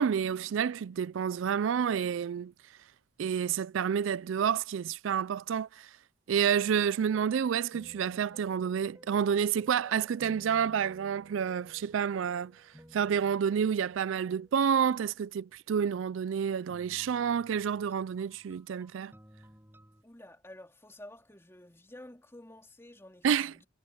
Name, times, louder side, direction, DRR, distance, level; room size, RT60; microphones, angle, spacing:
voice 1, 0.0-2.5 3.2-5.9 6.3-12.6 12.9-19.1 23.2-23.5, right 7 dB, 85° right, 0.4 m, -29 dB
sound 1, 6.3-15.5 16.7-20.0, equal, 10° right, 5.9 m, -57 dB
voice 2, 20.0-23.7, left 1 dB, 15° left, 3.3 m, -51 dB
head